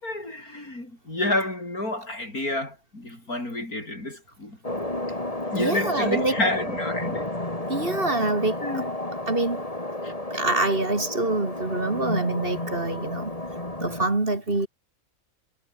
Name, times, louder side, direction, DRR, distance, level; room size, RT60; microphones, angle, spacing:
voice 1, 0.0-4.6 5.5-7.3 8.6-8.9 10.0-10.1, left 1 dB, 85° left, 8.7 m, -29 dB
sound 1, 4.6-14.1, left 1 dB, 25° left, 4.1 m, -32 dB
voice 2, 5.6-6.4 7.7-8.6 9.3-9.7 10.3-13.3 13.8-14.7, right 2 dB, 40° right, 3.3 m, -25 dB
omnidirectional pair, 1.5 m